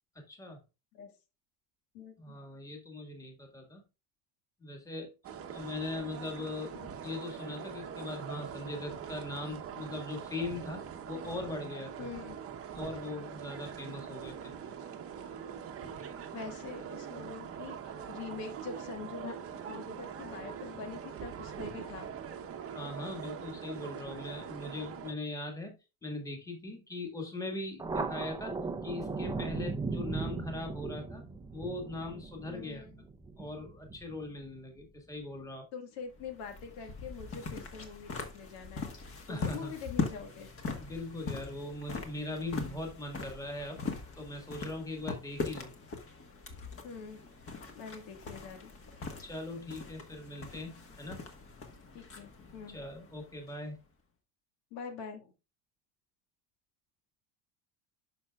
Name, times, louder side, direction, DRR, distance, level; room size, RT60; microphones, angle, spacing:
voice 1, 0.1-0.6 2.2-3.8 4.6-5.1 5.5-12.1 12.7-14.5 22.7-25.8 26.0-28.6 28.8-31.2 31.5-32.9 33.4-35.7 39.3-39.7 40.8-43.8 44.2-45.7 49.2-51.2 52.7-53.8, left 2 dB, 10° left, 2 dB, 1.7 m, -40 dB
voice 2, 1.9-2.3 6.7-6.9 12.0-12.4 16.0-19.4 19.7-22.1 32.5-33.0 35.7-38.9 39.3-40.5 46.8-47.2 47.7-48.7 51.9-52.8 54.7-55.3, left 5 dB, 70° left, 5 dB, 1.9 m, -44 dB
sound 1, 5.2-25.1, right 7 dB, 30° right, 0.9 m, -43 dB
Thunder, 27.8-34.8, right 4 dB, 10° right, 0.6 m, -38 dB
sound 2, 36.1-53.8, left 4 dB, 30° left, 1.5 m, -41 dB
11.0 x 5.7 x 2.3 m, 0.27 s
cardioid pair, 135°, 44 cm